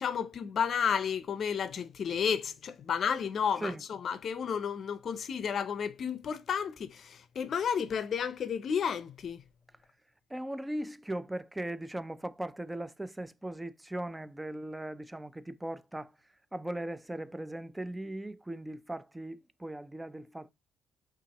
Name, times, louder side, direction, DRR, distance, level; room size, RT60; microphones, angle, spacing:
voice 1, 0.0-9.4, left 7 dB, 55° left, 0.5 m, -32 dB
voice 2, 10.3-16.1 16.5-20.5, right 1 dB, 10° right, 0.3 m, -38 dB
5.5 x 2.5 x 2.8 m
cardioid pair, 90°, 0 cm